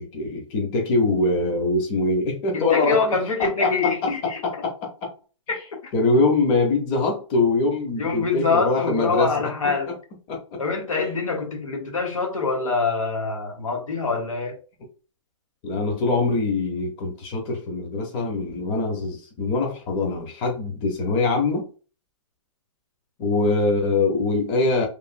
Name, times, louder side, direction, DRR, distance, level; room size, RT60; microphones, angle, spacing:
voice 1, 0.0-3.0 3.4-3.9 4.2-5.1 5.9-9.5 9.9-10.0 10.3-10.6 15.6-21.7 23.2-24.9, left 3 dB, 30° left, 0.9 m, -23 dB
voice 2, 2.5-4.6 5.5-5.6 8.0-9.9 10.6-14.6, left 4 dB, 85° left, 1.1 m, -25 dB
3.3 x 2.5 x 2.5 m
hypercardioid pair, 145°, 17 cm